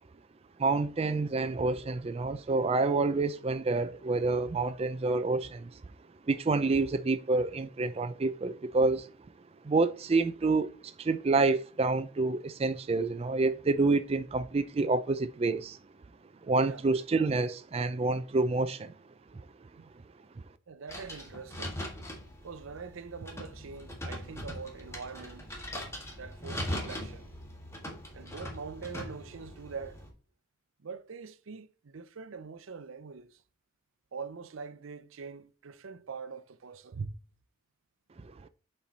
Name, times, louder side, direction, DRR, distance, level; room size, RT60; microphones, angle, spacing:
voice 1, 0.6-5.7 6.3-9.1 9.6-15.8 16.5-18.9 38.2-38.5, right 3 dB, 30° right, 0.4 m, -28 dB
voice 2, 20.7-21.8 22.4-25.6 26.2-27.2 28.1-30.0 30.8-33.4 34.1-37.2, right 5 dB, 85° right, 0.6 m, -43 dB
sound 1, 20.9-30.1, left 1 dB, 15° left, 1.5 m, -41 dB
7.2 x 4.4 x 4.0 m
head